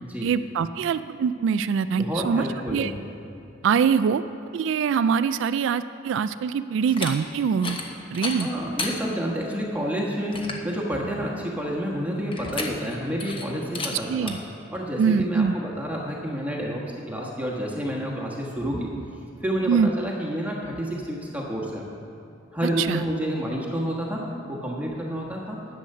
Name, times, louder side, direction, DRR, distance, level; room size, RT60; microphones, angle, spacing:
voice 1, 0.2-2.9 3.6-4.2 4.5-7.8 8.1-8.5 14.1-14.4 15.0-15.5 19.7-19.9 22.6-23.0, right 6 dB, 65° right, 12 dB, 0.3 m, -23 dB
voice 2, 2.0-2.9 8.4-14.3 14.7-18.9 19.4-21.8 22.5-24.2 24.5-25.6, equal, 10° right, -3 dB, 1.3 m, -29 dB
sound 1, 6.8-7.1 7.5-7.9 8.1-8.9 9.5-9.6 10.0-10.1 10.3-10.7 12.3-12.9 13.2-13.4 13.7-13.9 14.3-14.4, left 3 dB, 25° left, 1.1 m, -32 dB
11.5 x 7.9 x 6.6 m, 2.8 s
head